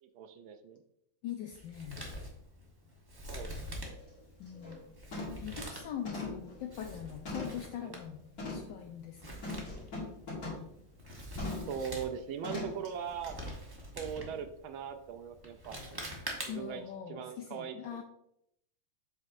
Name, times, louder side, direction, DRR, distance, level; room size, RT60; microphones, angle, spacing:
voice 1, 0.0-0.8 3.3-3.5 7.8-7.9 11.7-13.4 14.0-15.8 16.5-18.0, right 7 dB, 75° right, 7 dB, 1.3 m, -40 dB
voice 2, 1.2-2.0 4.4-4.8 5.4-9.3 16.5-18.0, left 9 dB, 75° left, 5 dB, 1.0 m, -42 dB
Male speech man speaking, 1.5-16.8, equal, 30° right, 0.4 m, -46 dB
sound 1, 3.8-4.1 4.5-4.8 5.1-5.5 6.1-7.7 8.4-8.7 9.4-10.7 11.4-11.8 12.4-12.9 13.3-13.4, left 3 dB, 40° left, 2.5 m, -40 dB
7.5 x 5.3 x 2.6 m, 0.75 s
omnidirectional pair, 2.4 m